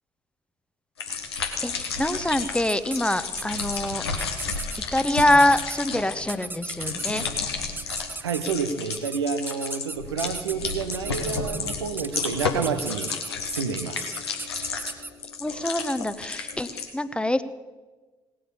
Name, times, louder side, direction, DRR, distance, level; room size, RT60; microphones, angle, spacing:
sound 1, 1.0-8.2 8.4-9.0 9.2-16.9, left 5 dB, 80° left, 1.4 m, -32 dB
voice 1, 1.6-4.0 4.9-7.2 15.4-17.4, left 1 dB, 10° left, 13 dB, 1.0 m, -24 dB
sound 2, 2.7-3.0 3.4-3.8 4.2-4.8 5.2-5.8 6.3-7.3 7.8-8.5 8.9-9.2 9.5-15.1, right 2 dB, 15° right, 1.2 m, -35 dB
voice 2, 8.2-13.2 13.5-14.0, right 6 dB, 80° right, 9 dB, 0.8 m, -29 dB
18.0 x 8.7 x 7.0 m, 1.3 s
figure-of-eight pair, 45°, 13 cm